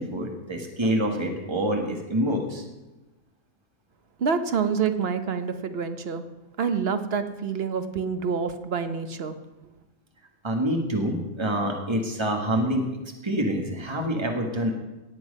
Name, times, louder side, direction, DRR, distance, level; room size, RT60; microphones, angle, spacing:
voice 1, 0.0-2.6 10.4-12.9 13.2-14.7, equal, 20° right, 2 dB, 1.7 m, -26 dB
voice 2, 4.2-6.3 6.6-9.4, right 6 dB, 50° right, 9 dB, 1.1 m, -27 dB
18.0 x 7.7 x 5.4 m, 1.1 s
omnidirectional pair, 1.4 m